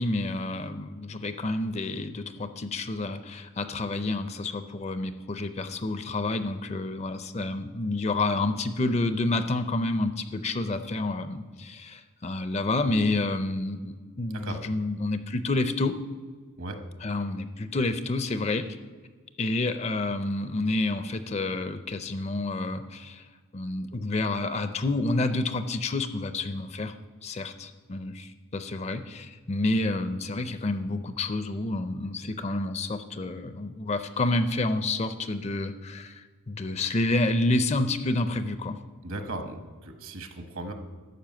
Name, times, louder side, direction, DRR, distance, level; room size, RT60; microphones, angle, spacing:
voice 1, 0.0-15.9 17.0-18.8 19.4-23.2 23.5-26.9 27.2-38.8, left 2 dB, 30° left, 10 dB, 0.4 m, -29 dB
voice 2, 39.0-40.7, right 2 dB, 65° right, 6 dB, 1.2 m, -37 dB
12.0 x 5.4 x 7.6 m, 1.5 s
head